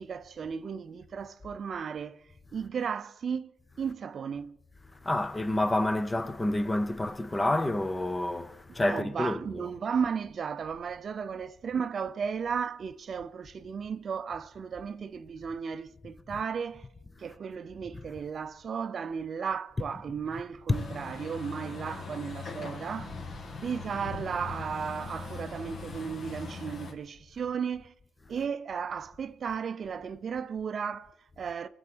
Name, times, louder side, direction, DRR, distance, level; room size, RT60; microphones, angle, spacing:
voice 1, 0.0-2.2 2.5-3.5 3.8-4.6 8.7-16.9 17.2-23.2 23.6-27.9 28.3-31.7, right 6 dB, 50° right, 0.6 m, -35 dB
voice 2, 5.0-9.7 16.3-16.4 17.9-18.1 19.8-20.1 20.7-20.8 23.6-23.7 28.4-28.5, left 1 dB, 15° left, 0.9 m, -29 dB
Truck, 20.7-26.9, left 4 dB, 55° left, 2.4 m, -41 dB
21.0 x 7.8 x 6.2 m
cardioid pair, 90°, 0 cm